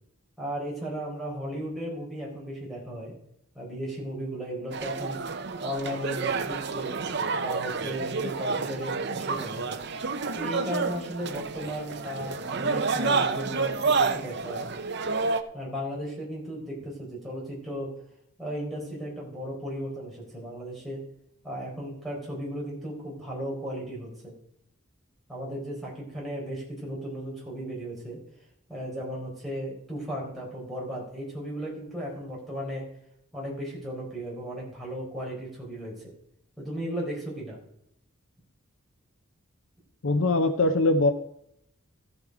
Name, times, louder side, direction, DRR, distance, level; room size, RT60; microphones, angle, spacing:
voice 1, 0.4-3.1 3.5-5.2 5.6-6.9 7.3-9.8 10.3-14.7 15.5-17.9 18.4-21.0 21.4-24.3 25.3-28.2 28.7-32.8 33.3-36.1 36.6-37.6, equal, ahead, -4 dB, 4.2 m, -35 dB
sound 1, 4.7-15.4, right 4 dB, 50° right, 0.7 m, -29 dB
voice 2, 40.0-41.1, left 2 dB, 65° left, 9 dB, 0.7 m, -22 dB
14.5 x 7.2 x 4.9 m, 0.74 s
head